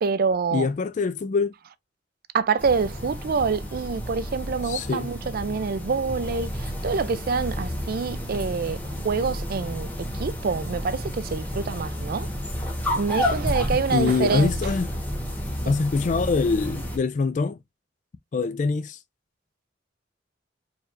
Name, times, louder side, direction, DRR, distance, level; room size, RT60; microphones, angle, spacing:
voice 1, 0.0-0.7 2.3-12.3 12.9-14.5 15.6-15.8, right 5 dB, 50° right, 0.4 m, -26 dB
voice 2, 0.5-1.5 4.6-5.1 13.9-14.9 15.7-17.6 18.3-19.0, left 4 dB, 40° left, 0.3 m, -24 dB
sound 1, 2.6-17.0, equal, 10° left, 1.3 m, -31 dB
4.6 x 3.2 x 2.5 m
head